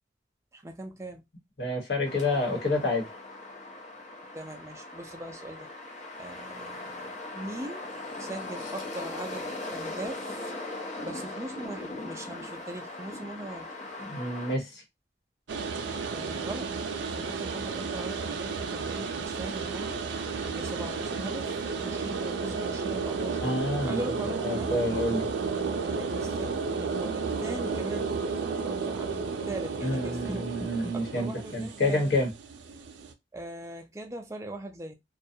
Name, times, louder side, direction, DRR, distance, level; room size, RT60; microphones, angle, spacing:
voice 1, 0.5-1.2 4.3-5.7 6.2-7.0 7.3-7.8 8.2-10.5 11.0-13.7 16.1-16.7 17.2-20.0 20.5-23.4 23.9-24.7 25.8-30.4 30.9-32.0 33.3-35.0, right 1 dB, 15° right, 0.4 m, -40 dB
voice 2, 1.6-3.1 14.0-14.8 23.4-24.1 24.4-25.2 29.8-32.3, left 1 dB, 70° left, 1.1 m, -28 dB
sound 1, 2.1-14.6, left 2 dB, 40° left, 0.6 m, -39 dB
sound 2, 15.5-33.1, right 4 dB, 85° right, 0.4 m, -32 dB
2.3 x 2.2 x 2.7 m
head